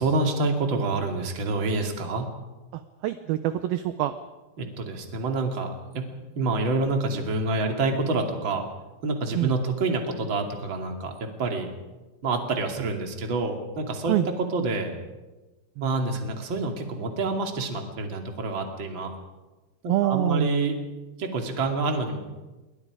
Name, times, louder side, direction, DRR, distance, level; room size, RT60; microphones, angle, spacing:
voice 1, 0.0-2.3 4.6-6.1 6.3-8.6 9.0-11.7 12.2-15.0 15.8-19.1 20.0-20.8 21.2-22.2, right 3 dB, 35° right, 3 dB, 2.6 m, -27 dB
voice 2, 3.0-4.1 9.4-9.5 14.1-14.3 15.8-15.9 19.9-20.5, right 14 dB, 75° right, 10 dB, 2.4 m, -25 dB
28.0 x 23.0 x 5.0 m, 1.2 s
omnidirectional pair, 4.9 m